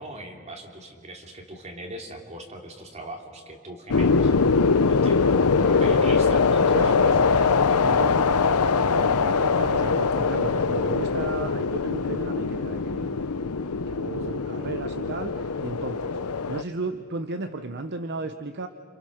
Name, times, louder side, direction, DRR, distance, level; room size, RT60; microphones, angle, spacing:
voice 1, 0.0-4.3 4.9-5.3 5.6-6.9, right 1 dB, 30° right, 3 dB, 3.0 m, -40 dB
sound 1, 3.9-16.6, left 4 dB, 75° left, 0.7 m, -22 dB
voice 2, 6.7-8.5 8.9-16.2 16.5-18.7, right 3 dB, 50° right, 8 dB, 0.9 m, -34 dB
29.0 x 27.0 x 6.5 m, 2.2 s
head